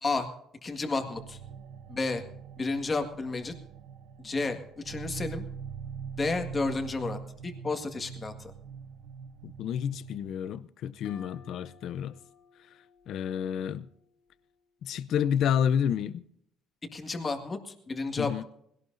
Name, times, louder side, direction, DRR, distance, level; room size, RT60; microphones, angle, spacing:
voice 1, 0.6-1.4 1.9-2.2 2.6-3.5 4.2-4.6 4.9-5.4 6.2-8.5 16.9-18.4, left 3 dB, 20° left, 1.8 m, -31 dB
sound 1, 1.1-10.4, right 6 dB, 85° right, 0.9 m, -43 dB
voice 2, 9.4-12.1 13.1-13.9 14.8-16.2 18.2-18.4, left 8 dB, 60° left, 0.6 m, -29 dB
sound 2, 11.0-14.6, left 6 dB, 80° left, 3.8 m, -57 dB
20.5 x 17.5 x 2.6 m
cardioid pair, 140°, 0 cm